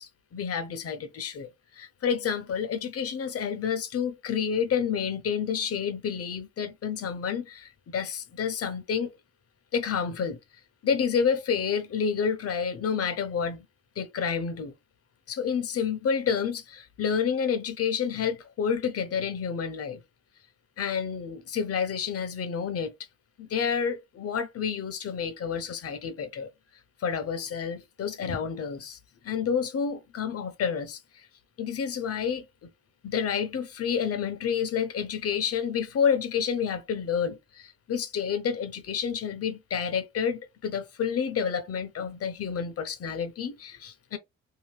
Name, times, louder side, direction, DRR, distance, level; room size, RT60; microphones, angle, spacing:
voice 1, 0.0-9.1 9.7-10.4 10.8-13.7 14.0-14.7 15.3-20.0 20.8-22.9 23.4-26.5 27.0-29.0 29.2-31.3 31.6-32.4 33.0-44.2, left 7 dB, 50° left, 0.7 m, -29 dB
2.8 x 2.6 x 3.1 m
cardioid pair, 90°, 30 cm